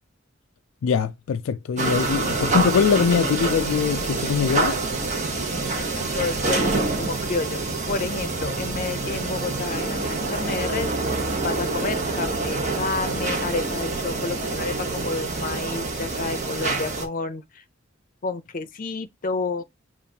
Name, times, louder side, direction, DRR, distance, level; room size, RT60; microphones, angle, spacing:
voice 1, 0.8-4.8, left 6 dB, 80° left, 0.3 m, -22 dB
sound 1, 1.8-17.1, right 3 dB, 40° right, 1.0 m, -26 dB
voice 2, 5.7-7.6 7.9-10.9 11.4-17.6 18.2-19.6, left 4 dB, 45° left, 0.6 m, -30 dB
6.9 x 2.5 x 2.8 m
head